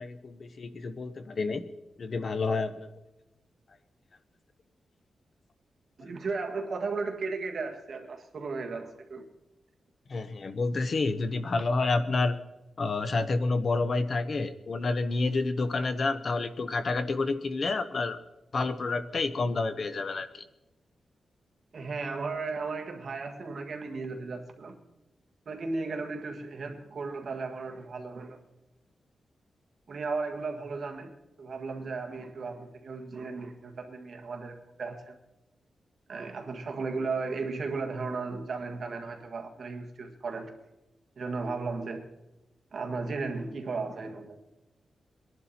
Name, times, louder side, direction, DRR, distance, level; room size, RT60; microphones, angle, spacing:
voice 1, 0.0-1.6 2.0-2.9 10.1-12.3 12.8-18.2 18.5-20.4, left 3 dB, 40° left, 11 dB, 0.7 m, -29 dB
voice 2, 6.0-9.3 21.7-24.8 25.5-28.4 29.9-31.1 31.4-35.2 36.1-40.5 41.2-42.1 42.7-44.4, right 4 dB, 45° right, 4 dB, 1.7 m, -35 dB
22.0 x 11.0 x 4.3 m, 0.99 s
wide cardioid pair, 175°, 0 cm